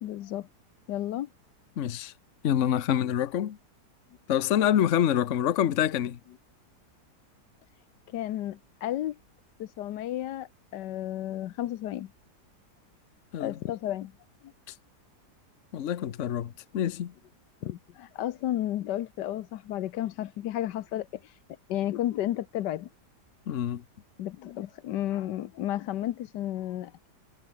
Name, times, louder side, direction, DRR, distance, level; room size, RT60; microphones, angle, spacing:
voice 1, 0.0-0.5 0.9-1.3 8.1-9.2 9.6-12.1 13.4-14.1 14.4-14.5 17.6-21.2 21.7-22.9 24.2-26.9, left 13 dB, 85° left, 1.4 m, -32 dB
voice 2, 1.8-2.1 2.4-3.6 4.3-6.2 13.3-13.6 15.7-17.1 23.5-23.8, left 10 dB, 55° left, 1.1 m, -26 dB
omnidirectional pair, 1.8 m